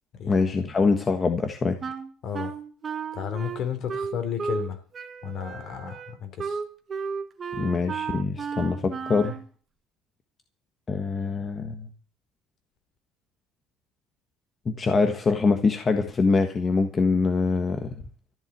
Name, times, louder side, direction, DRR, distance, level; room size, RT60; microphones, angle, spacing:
voice 1, 0.3-1.8 7.5-9.4 10.9-11.9 14.6-17.9, left 4 dB, 25° left, 7 dB, 1.4 m, -24 dB
Wind instrument woodwind instrument, 1.8-4.7 4.9-9.4, right 6 dB, 30° right, 1.7 m, -34 dB
voice 2, 3.1-4.8 5.2-6.6, left 8 dB, 50° left, 8 dB, 3.3 m, -32 dB
14.5 x 7.3 x 9.2 m, 0.43 s
cardioid pair, 135°, 0 cm